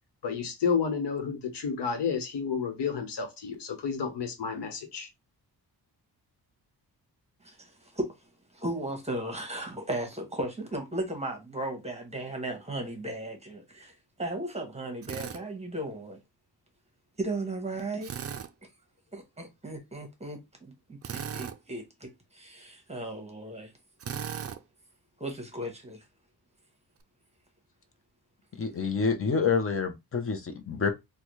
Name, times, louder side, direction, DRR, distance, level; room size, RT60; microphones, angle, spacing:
voice 1, 0.2-5.1, left 6 dB, 85° left, 1.1 m, -31 dB
voice 2, 7.4-8.1 8.5-16.2 17.2-18.1 19.1-23.7 25.2-26.0, right 1 dB, 15° right, 1.0 m, -36 dB
Drill, 15.0-15.4 18.0-18.5 21.0-21.6 24.0-24.6, right 8 dB, 40° right, 0.4 m, -36 dB
voice 3, 28.5-30.9, left 5 dB, 35° left, 0.8 m, -28 dB
4.0 x 2.3 x 3.1 m
wide cardioid pair, 125°, 40 cm